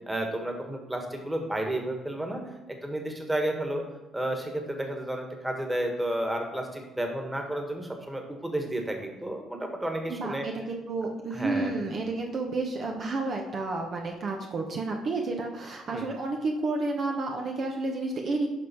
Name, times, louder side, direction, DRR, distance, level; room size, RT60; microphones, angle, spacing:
voice 1, 0.1-2.4 2.7-3.8 4.1-10.5 11.3-11.7 15.9-16.1, right 1 dB, 10° right, 3 dB, 1.7 m, -32 dB
voice 2, 10.1-18.5, right 3 dB, 55° right, 1 dB, 1.0 m, -31 dB
11.0 x 3.7 x 4.5 m, 1.1 s
supercardioid pair, 70°, 0 cm